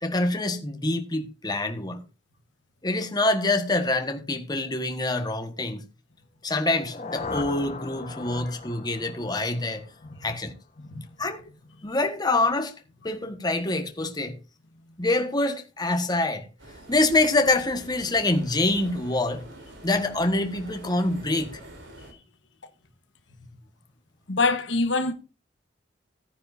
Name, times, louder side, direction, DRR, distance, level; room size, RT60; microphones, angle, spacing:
voice 1, 0.0-2.0 2.8-5.8 6.4-9.8 10.2-10.5 11.2-11.5 11.8-12.7 13.0-14.4 15.0-16.5 16.9-19.5 19.8-21.6, left 2 dB, 20° left, 1.4 m, -25 dB
sound 1, 6.6-10.5, left 3 dB, 40° left, 1.2 m, -38 dB
sound 2, 16.6-22.1, right 1 dB, 90° right, 3.7 m, -46 dB
voice 2, 24.3-25.1, left 3 dB, 80° left, 1.3 m, -26 dB
16.5 x 9.9 x 2.6 m
head